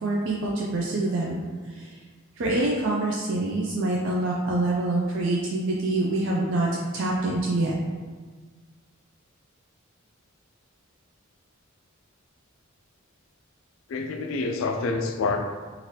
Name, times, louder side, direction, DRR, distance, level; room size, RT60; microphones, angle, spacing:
voice 1, 0.0-2.0 2.4-7.7, right 2 dB, 60° right, -3 dB, 0.4 m, -26 dB
voice 2, 13.9-15.5, left 3 dB, 65° left, 4 dB, 0.3 m, -27 dB
2.8 x 2.5 x 3.1 m, 1.4 s
head